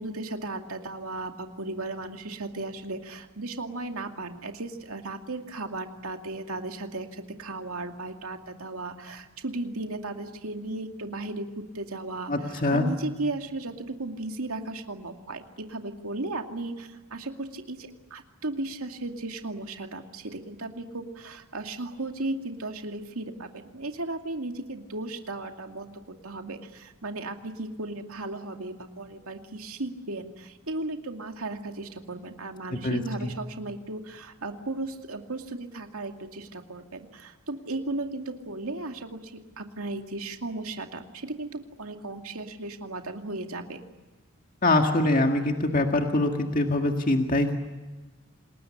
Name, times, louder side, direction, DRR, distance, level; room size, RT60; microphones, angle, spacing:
voice 1, 0.0-25.9 26.2-43.8, right 2 dB, 85° right, 4 dB, 2.4 m, -35 dB
voice 2, 12.3-12.9 32.7-33.3 44.6-47.6, left 2 dB, 40° left, 3 dB, 1.9 m, -24 dB
27.5 x 20.5 x 9.9 m, 1.2 s
head